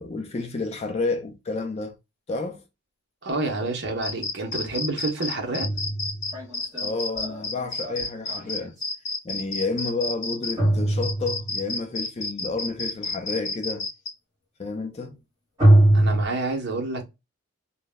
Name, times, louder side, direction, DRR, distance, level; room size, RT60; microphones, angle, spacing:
voice 1, 0.0-1.9 2.3-2.6 6.8-8.7 9.2-13.9 14.6-15.2, left 3 dB, 30° left, 0.3 m, -30 dB
voice 2, 3.2-5.7 15.9-17.0, right 2 dB, 50° right, 0.7 m, -28 dB
sound 1, 4.0-10.5 11.0-14.1, left 3 dB, 50° left, 0.7 m, -30 dB
sound 2, 4.2-4.3 5.2-8.8 10.6-11.7 15.6-16.3, right 1 dB, 15° right, 1.0 m, -22 dB
2.1 x 2.1 x 3.3 m
head